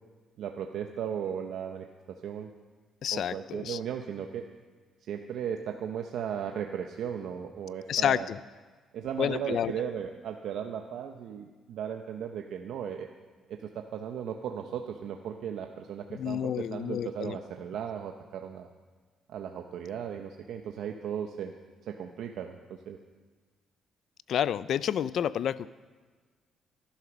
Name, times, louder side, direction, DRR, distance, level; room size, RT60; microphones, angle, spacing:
voice 1, 0.4-2.5 3.1-4.5 5.0-8.3 8.9-13.1 13.5-18.7 19.3-21.5 21.9-23.0, right 8 dB, 80° right, 4 dB, 0.8 m, -36 dB
voice 2, 3.0-3.8 7.9-8.4 9.2-9.7 16.1-17.4 24.3-25.7, left 9 dB, 70° left, 18 dB, 0.4 m, -29 dB
14.5 x 11.5 x 6.1 m, 1.4 s
cardioid pair, 90°, 0 cm